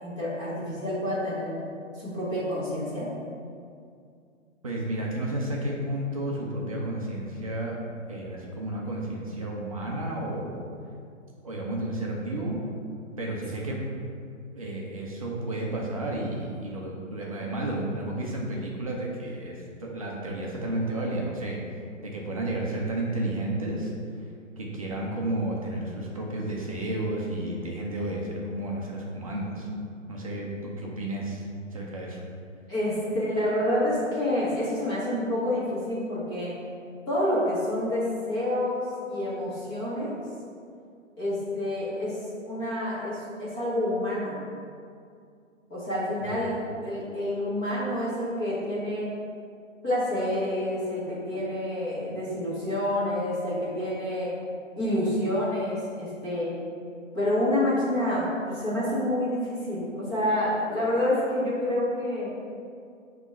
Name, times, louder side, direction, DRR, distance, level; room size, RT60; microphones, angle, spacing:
voice 1, 0.0-1.6 1.9-3.1 32.7-36.5 37.1-40.1 41.2-44.4 45.7-49.1 49.8-54.3 54.8-56.5 57.1-62.3, left 1 dB, 15° left, -10 dB, 1.1 m, -28 dB
voice 2, 4.6-7.8 8.1-10.6 11.4-12.6 13.2-13.8 14.5-21.6 22.0-23.9 24.6-29.7 30.1-32.2, right 1 dB, 30° right, -2 dB, 0.6 m, -32 dB
6.0 x 3.1 x 5.5 m, 2.3 s
hypercardioid pair, 155°, 40 cm